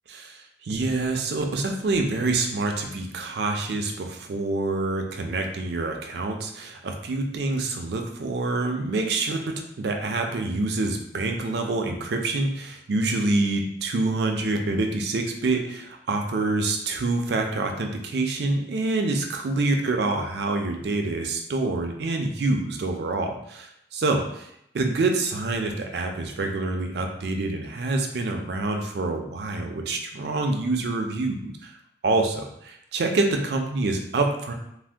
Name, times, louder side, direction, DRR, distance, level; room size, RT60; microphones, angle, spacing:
voice 1, 0.1-23.7 23.9-24.5 24.7-31.7 32.0-34.5, right 2 dB, 65° right, 3 dB, 0.4 m, -26 dB
2.5 x 2.1 x 3.3 m, 0.75 s
head